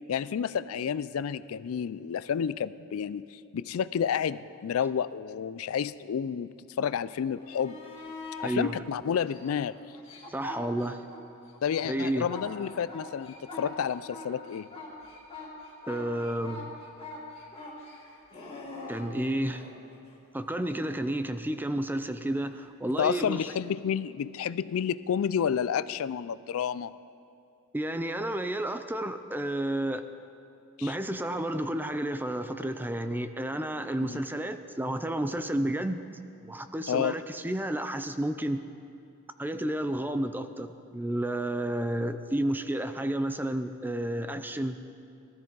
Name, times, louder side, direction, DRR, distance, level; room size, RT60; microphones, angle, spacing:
voice 1, 0.1-6.5 6.8-7.8 8.4-9.7 11.6-14.7 23.0-26.9 30.8-30.9 34.0-34.2 36.9-37.1, left 8 dB, 75° left, 16 dB, 0.4 m, -30 dB
sound 1, 7.3-8.5 9.2-11.2 11.5-19.8 22.5-22.6, left 3 dB, 30° left, 3.3 m, -43 dB
voice 2, 8.4-8.8 10.3-11.0 11.9-12.3 15.9-16.7 18.9-19.7 20.3-23.4 27.7-30.0 30.8-38.6 39.4-44.8, right 1 dB, 10° right, 10 dB, 0.5 m, -31 dB
19.0 x 13.5 x 4.0 m, 2.5 s
head